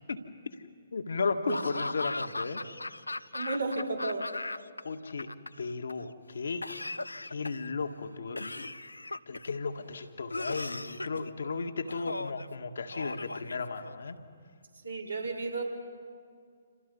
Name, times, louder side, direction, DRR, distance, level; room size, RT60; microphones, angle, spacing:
voice 1, 0.9-2.6 4.8-5.3 5.6-6.7 7.2-8.7 9.3-14.2, left 4 dB, 65° left, 7 dB, 1.9 m, -35 dB
Laughter / Cough, 1.5-4.8 5.1-5.9 6.6-7.7 8.4-9.6 10.3-11.2 11.9-12.5 12.9-14.1, left 2 dB, 80° left, 0.6 m, -37 dB
voice 2, 3.3-4.3 14.8-15.6, right 3 dB, 75° right, -1 dB, 4.7 m, -33 dB
29.0 x 26.5 x 5.5 m, 2.2 s
figure-of-eight pair, 130°, 0 cm